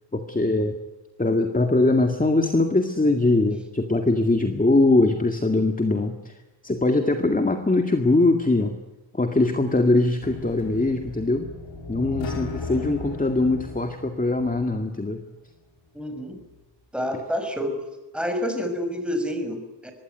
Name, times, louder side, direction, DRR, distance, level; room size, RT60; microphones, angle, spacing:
voice 1, 0.1-0.8 1.2-6.4 6.6-8.8 9.1-11.5 11.9-15.2, left 2 dB, 20° left, 6 dB, 2.1 m, -22 dB
sound 1, 10.2-15.1, left 3 dB, 80° left, 4.7 m, -36 dB
voice 2, 15.9-16.4 16.9-17.8 18.1-19.9, equal, ahead, 6 dB, 6.0 m, -28 dB
24.5 x 20.5 x 9.5 m, 1.1 s
wide cardioid pair, 130°, 45 cm